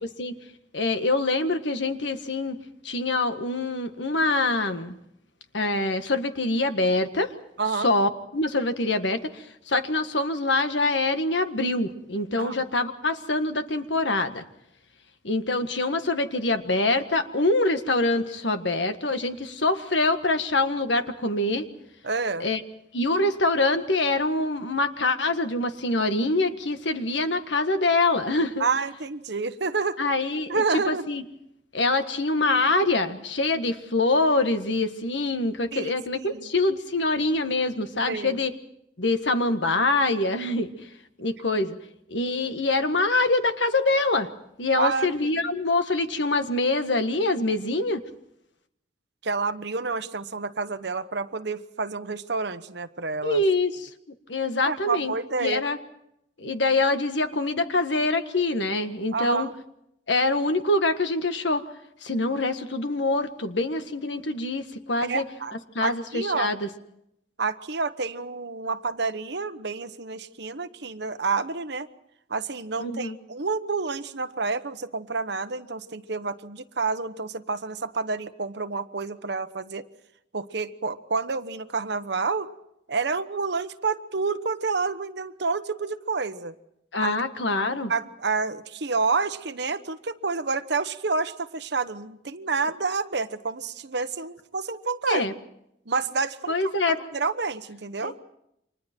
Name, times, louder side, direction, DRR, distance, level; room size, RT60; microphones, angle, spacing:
voice 1, 0.7-4.9 5.5-7.3 7.8-14.4 15.2-21.7 22.4-22.6 22.9-28.6 30.0-31.2 31.7-38.5 39.0-40.7 41.2-41.8 42.1-44.3 44.6-48.0 53.2-53.9 54.3-55.1 55.4-55.8 56.4-59.5 60.1-61.6 62.0-65.2 65.7-66.7 72.8-73.2 86.9-87.9 95.1-95.3 96.5-97.0 98.0-98.2, left 2 dB, 80° left, 9 dB, 1.6 m, -25 dB
voice 2, 7.6-7.9 12.4-12.6 22.0-22.5 28.6-30.0 30.5-31.1 35.7-36.5 38.1-38.4 44.8-45.4 49.2-53.4 54.6-55.6 59.1-59.5 65.0-65.5 65.8-66.5 67.4-71.9 72.3-79.8 80.3-82.5 82.9-86.5 87.0-87.1 87.9-95.3 95.9-96.6 97.1-98.2, right 4 dB, 65° right, 11 dB, 1.2 m, -29 dB
29.5 x 25.5 x 4.5 m, 0.79 s
head